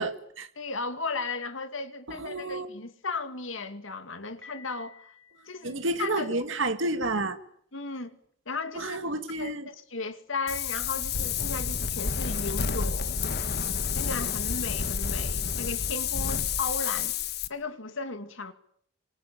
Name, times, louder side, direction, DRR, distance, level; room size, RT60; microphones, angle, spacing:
voice 1, 0.0-0.5 2.1-2.7 5.6-7.4 8.8-9.7, right 2 dB, 65° right, 2.0 m, -30 dB
voice 2, 0.6-5.0 5.5-6.4 7.7-8.2 8.5-9.0 9.4-13.2 13.9-17.1 17.5-18.5, left 3 dB, 70° left, 2.3 m, -35 dB
Piano, 4.4-6.4, left 6 dB, 10° left, 4.4 m, -53 dB
Wind, 10.5-17.5, left 6 dB, 50° left, 1.4 m, -29 dB
26.5 x 24.0 x 8.3 m
head